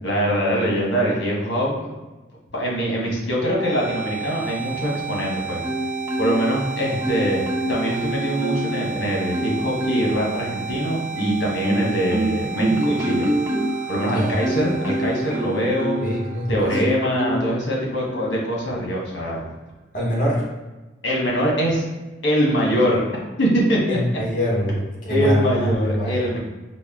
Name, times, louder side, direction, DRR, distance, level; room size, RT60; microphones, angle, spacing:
voice 1, 0.0-1.9 2.5-5.6 6.2-13.3 13.9-16.0 16.5-19.4 21.0-21.9 22.2-23.1 23.4-24.0 25.1-26.4, equal, 70° left, -3 dB, 1.1 m, -23 dB
sound 1, 3.4-17.4, right 7 dB, 40° right, 0.8 m, -33 dB
Marimba xylophone, 5.6-6.6 7.0-8.8 9.3-10.2 10.7-16.2 16.7-17.6 18.1-18.4, right 1 dB, 15° right, 0.4 m, -26 dB
voice 2, 16.0-16.7 19.9-20.4 23.9-24.7 25.0-26.4, equal, 45° left, -3 dB, 1.1 m, -24 dB
4.1 x 2.1 x 3.5 m, 1.1 s
head